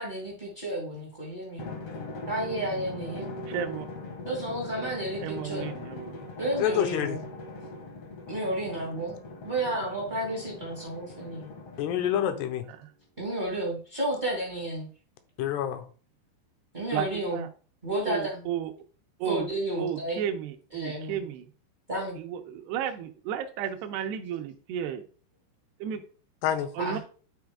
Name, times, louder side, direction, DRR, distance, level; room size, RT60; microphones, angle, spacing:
voice 1, 0.0-1.7 2.3-3.3 4.2-5.8 6.4-7.2 8.3-9.1 9.4-11.5 13.2-14.9 16.7-17.4 17.8-18.4 19.2-20.2 20.7-21.2 21.9-22.2 26.8-27.0, right 1 dB, 35° right, -2 dB, 0.7 m, -32 dB
Drum, 1.6-12.6, left 2 dB, 60° left, 1.5 m, -41 dB
voice 2, 3.5-3.9 5.2-6.3 12.7-12.9 16.9-17.1 17.3-17.5 18.1-18.7 19.2-19.5 19.8-21.5 22.2-25.0 25.8-26.0 26.7-27.0, right 9 dB, 75° right, 5 dB, 2.7 m, -33 dB
voice 3, 6.6-7.2 11.8-12.6 15.4-15.8 26.4-26.7, left 10 dB, 75° left, 9 dB, 2.7 m, -27 dB
11.5 x 4.4 x 3.6 m, 0.39 s
omnidirectional pair, 5.1 m